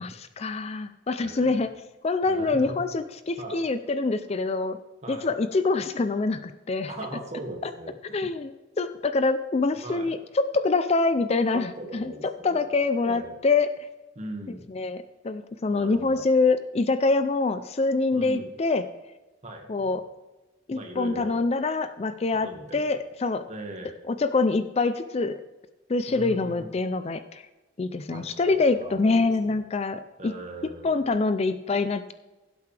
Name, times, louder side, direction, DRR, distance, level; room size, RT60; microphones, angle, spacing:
voice 1, 0.0-1.7 2.0-4.8 5.1-6.9 7.6-7.7 8.1-8.5 8.8-12.1 12.4-13.7 14.7-18.9 19.7-20.0 20.7-23.4 24.1-25.3 25.9-27.4 27.8-30.3 30.8-32.1, left 3 dB, 35° left, 11 dB, 0.4 m, -25 dB
voice 2, 1.2-1.6 2.2-2.8 3.4-3.6 5.0-5.3 6.9-8.3 9.8-10.1 11.5-12.6 12.9-13.3 14.1-14.6 15.7-16.3 18.1-18.5 19.4-19.9 20.7-21.4 22.3-22.9 23.5-24.0 26.1-26.7 28.1-29.6 30.2-31.1, right 1 dB, 35° right, 2 dB, 1.8 m, -39 dB
16.0 x 8.1 x 3.4 m, 1.1 s
head